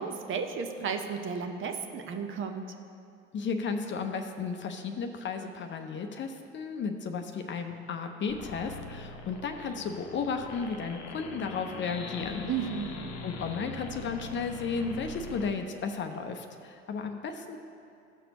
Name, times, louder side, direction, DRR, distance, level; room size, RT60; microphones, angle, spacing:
voice 1, 0.0-2.7 12.5-12.9, right 6 dB, 35° right, 5 dB, 0.8 m, -33 dB
voice 2, 3.3-12.9 13.2-17.6, left 5 dB, 35° left, 6 dB, 0.7 m, -34 dB
sound 1, 8.3-15.5, left 4 dB, 70° left, 0.8 m, -42 dB
14.0 x 6.7 x 3.0 m, 2.5 s
figure-of-eight pair, 55°, 33 cm